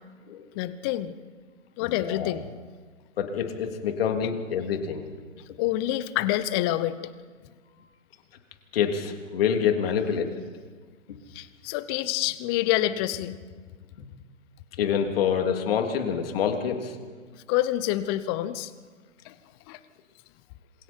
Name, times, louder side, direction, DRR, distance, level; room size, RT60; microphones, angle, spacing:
voice 1, 0.5-1.1 1.8-2.5 5.6-7.0 11.3-13.4 17.5-18.7 19.2-19.3 19.7-19.8, left 14 dB, 20° left, 15 dB, 0.7 m, -27 dB
voice 2, 1.8-2.3 3.2-5.0 8.7-10.3 14.8-16.9, left 7 dB, 45° left, 4 dB, 3.3 m, -26 dB
27.0 x 26.5 x 4.6 m, 1.5 s
figure-of-eight pair, 130°, 40 cm